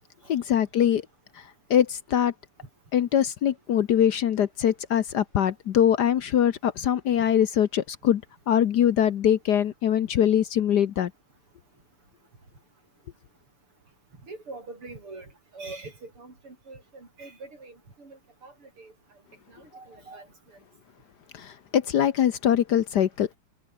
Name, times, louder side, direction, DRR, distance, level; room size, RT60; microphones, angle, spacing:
voice 1, 0.3-1.1 1.3-2.3 2.9-11.1 21.3-23.3, left 9 dB, 60° left, 1.3 m, -23 dB
voice 2, 14.2-18.9 19.5-20.3, right 3 dB, 85° right, 7.4 m, -44 dB
omnidirectional pair, 2.4 m